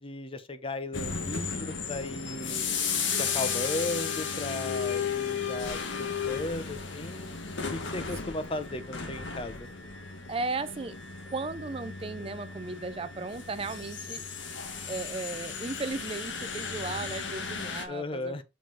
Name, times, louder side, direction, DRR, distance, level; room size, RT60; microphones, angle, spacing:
voice 1, 0.0-2.7 3.2-7.4 7.7-9.7 12.2-12.3 17.9-18.4, left 2 dB, 30° left, 0.7 m, -36 dB
sound 1, 0.9-17.9, left 6 dB, 70° left, 1.4 m, -34 dB
voice 2, 10.3-11.0 11.3-14.2 14.9-18.3, right 3 dB, 30° right, 0.5 m, -35 dB
6.2 x 4.6 x 3.9 m
head